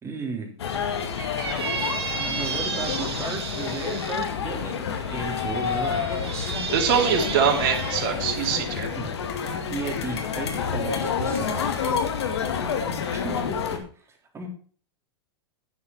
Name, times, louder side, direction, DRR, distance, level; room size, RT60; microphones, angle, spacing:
voice 1, 0.0-0.5 2.1-6.6 9.0-9.1 9.4-11.8 13.1-13.8 14.1-14.5, right 4 dB, 20° right, 2 dB, 3.5 m, -35 dB
sound 1, 0.6-13.8, left 7 dB, 75° left, 2.1 m, -29 dB
Squeak, 1.2-4.2 5.1-8.1, right 5 dB, 80° right, 3.1 m, -33 dB
voice 2, 6.4-8.9, right 7 dB, 55° right, 3 dB, 3.2 m, -24 dB
9.8 x 9.6 x 4.6 m, 0.43 s
hypercardioid pair, 110°, 14 cm